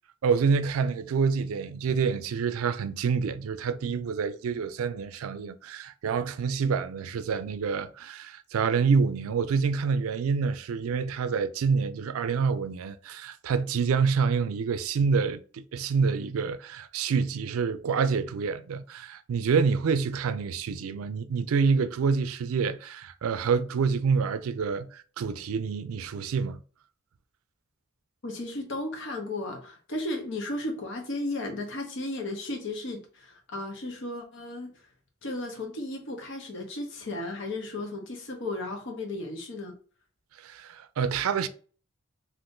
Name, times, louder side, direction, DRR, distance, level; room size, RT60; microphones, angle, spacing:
voice 1, 0.2-26.6 40.4-41.5, right 5 dB, 85° right, 0.4 m, -27 dB
voice 2, 28.2-34.7 35.2-39.8, left 2 dB, 60° left, 0.8 m, -34 dB
2.6 x 2.5 x 3.5 m
head